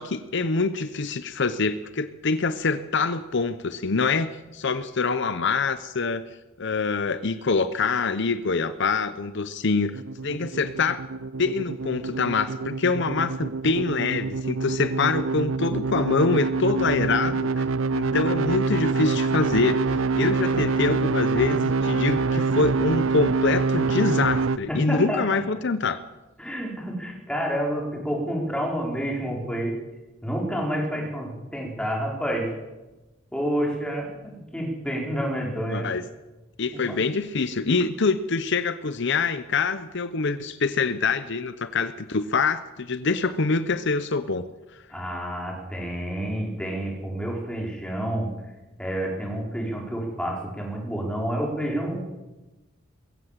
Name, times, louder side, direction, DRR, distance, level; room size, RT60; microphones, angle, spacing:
voice 1, 0.0-6.2 6.6-11.0 11.4-17.7 17.9-26.0 35.7-36.0 36.6-44.5, left 4 dB, 60° left, 12 dB, 0.8 m, -25 dB
sound 1, 9.9-24.6, right 4 dB, 75° right, 0.6 m, -26 dB
voice 2, 24.7-25.4 26.4-29.8 30.2-32.5 33.3-35.9 36.7-37.0 44.9-48.3 48.8-52.0, equal, 5° left, -1 dB, 4.9 m, -29 dB
22.0 x 16.0 x 7.6 m, 1.1 s
head